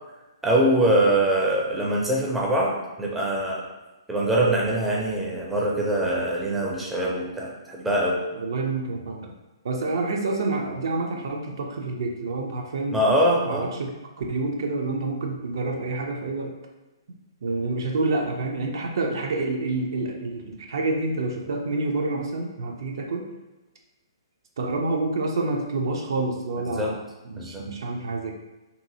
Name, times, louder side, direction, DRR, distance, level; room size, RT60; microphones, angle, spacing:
voice 1, 0.4-3.7 4.1-8.2 12.9-13.7 26.8-26.9 27.4-27.6, right 1 dB, 5° right, -3 dB, 0.5 m, -23 dB
voice 2, 8.4-9.3 9.6-13.0 13.4-16.5 17.4-23.3 24.6-26.9 27.2-28.3, right 3 dB, 60° right, 1 dB, 0.4 m, -28 dB
2.7 x 2.6 x 2.6 m, 1.1 s
figure-of-eight pair, 120°, 2 cm